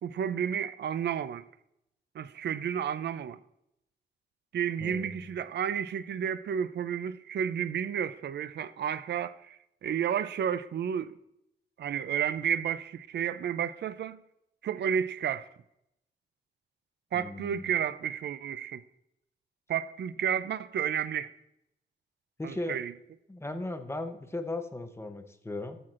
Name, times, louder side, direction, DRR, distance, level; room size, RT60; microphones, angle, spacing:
voice 1, 0.0-1.5 2.1-3.4 4.5-11.2 11.8-14.2 14.6-15.5 17.1-18.8 19.7-21.3 22.4-22.9, right 8 dB, 70° right, 0.4 m, -31 dB
voice 2, 4.8-5.3 17.1-17.7 22.4-22.8 23.3-25.8, left 2 dB, 15° left, 0.7 m, -37 dB
13.5 x 6.0 x 2.5 m
wide cardioid pair, 120°, 18 cm